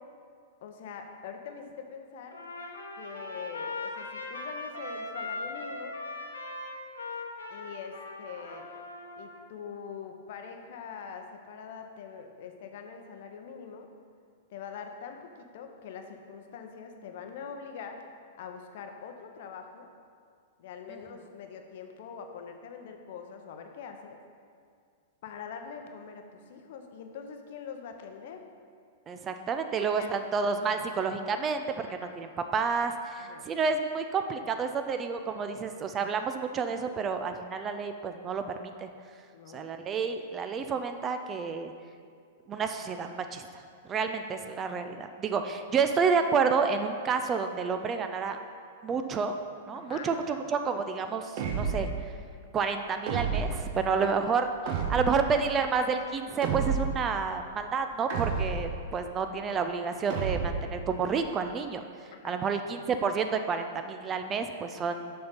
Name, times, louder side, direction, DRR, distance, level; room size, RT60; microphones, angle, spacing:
voice 1, 0.6-2.4 3.0-6.0 7.5-8.7 9.1-13.9 14.5-18.0 18.4-19.9 20.6-24.2 25.2-28.4 29.8-30.2 31.9-32.1 33.2-33.5 39.3-39.7 45.9-46.0 49.7-50.2 53.9-54.3 62.1-62.4, left 6 dB, 50° left, 5 dB, 0.8 m, -43 dB
Trumpet, 2.3-9.4, left 2 dB, 75° left, 1.1 m, -39 dB
voice 2, 29.1-38.9 39.5-41.7 42.5-43.6 43.9-48.4 48.8-49.3 49.7-51.9 52.5-54.5 54.9-61.8 62.2-65.1, right 5 dB, 25° right, 7 dB, 0.5 m, -30 dB
sound 1, 51.4-52.0 53.1-53.7 54.7-55.3 56.4-57.1 58.1-58.8 60.1-60.7, right 5 dB, 45° right, 0.9 m, -30 dB
6.7 x 5.7 x 5.1 m, 2.2 s
figure-of-eight pair, 100°, 0 cm